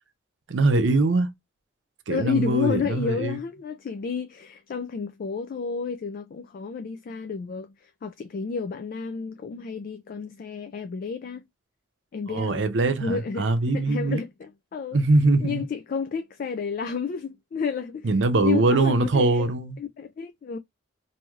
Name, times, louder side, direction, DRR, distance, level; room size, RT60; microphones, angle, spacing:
voice 1, 0.5-1.3 2.1-3.4 12.3-14.2 14.9-15.7 18.0-19.8, right 2 dB, 75° right, 0.6 m, -22 dB
voice 2, 2.1-11.4 12.1-12.7 13.0-13.5 13.7-15.0 15.4-18.1 18.4-19.5 19.8-20.6, left 5 dB, 50° left, 0.3 m, -31 dB
3.0 x 2.7 x 2.3 m
head